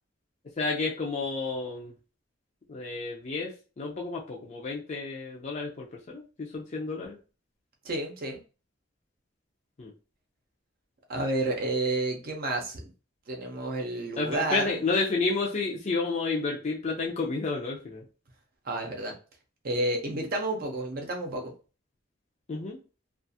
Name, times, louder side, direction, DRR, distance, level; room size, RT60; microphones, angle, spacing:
voice 1, 0.6-1.9 2.7-7.2 9.8-9.9 14.2-18.0 22.5-22.8, left 3 dB, 35° left, -2 dB, 0.4 m, -31 dB
voice 2, 7.8-8.4 11.1-12.8 13.3-14.8 18.6-19.1 19.6-21.5, right 2 dB, 50° right, 2 dB, 0.6 m, -30 dB
2.4 x 2.3 x 2.6 m, 0.34 s
head